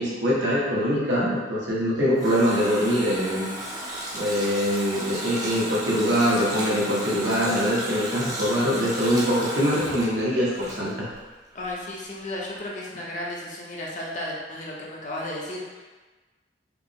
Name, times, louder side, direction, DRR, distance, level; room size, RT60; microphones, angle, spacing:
voice 1, 0.0-3.5 4.1-11.1, equal, 85° right, -7 dB, 1.2 m, -23 dB
Water tap faucet, 1.7-11.3 11.6-11.7, right 1 dB, 20° right, 0.7 m, -34 dB
voice 2, 11.5-15.9, left 1 dB, 45° left, -3 dB, 0.7 m, -34 dB
4.8 x 2.1 x 3.6 m, 1.3 s
head